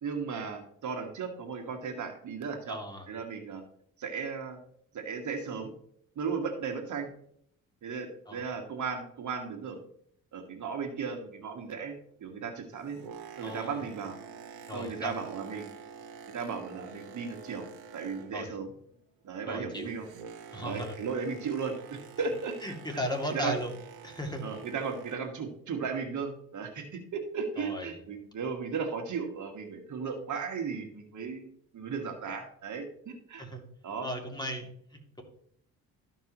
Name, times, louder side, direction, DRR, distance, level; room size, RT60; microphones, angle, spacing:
voice 1, 0.0-2.8 3.1-3.6 4.0-4.6 4.9-5.7 6.2-7.1 7.8-9.8 10.3-11.9 12.2-13.0 13.4-14.2 14.7-15.7 16.3-17.7 17.9-18.7 19.2-20.1 20.6-22.7 23.3-23.6 24.4-31.5 31.7-33.5 33.8-34.1, right 5 dB, 55° right, 5 dB, 1.7 m, -35 dB
voice 2, 2.7-3.1 8.3-8.4 13.4-13.8 14.7-15.2 18.3-18.6 19.5-19.9 20.5-21.0 22.6-23.7 24.0-24.4 27.6-27.9 33.4-33.6 34.0-35.2, equal, 10° left, 1 dB, 2.4 m, -36 dB
Boat Water vehicle, 12.6-18.7 18.9-25.4 26.0-26.2, right 6 dB, 90° right, 1.3 m, -48 dB
13.5 x 5.4 x 3.0 m, 0.66 s
supercardioid pair, 65°, 36 cm